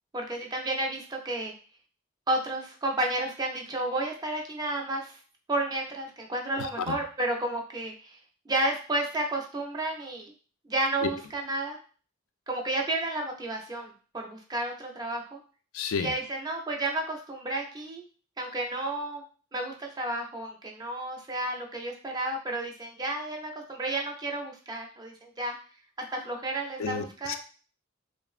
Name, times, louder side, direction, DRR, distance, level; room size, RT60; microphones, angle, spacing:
voice 1, 0.1-1.5 2.3-5.2 5.5-8.2 8.5-10.3 10.7-11.8 12.5-15.4 16.0-18.0 18.4-19.2 19.5-25.6 26.1-27.4, right 2 dB, 20° right, 1 dB, 0.4 m, -32 dB
voice 2, 6.6-7.0 11.0-11.1 15.7-16.1 26.8-27.4, left 5 dB, 75° left, 8 dB, 0.3 m, -31 dB
3.0 x 2.0 x 2.4 m, 0.39 s
head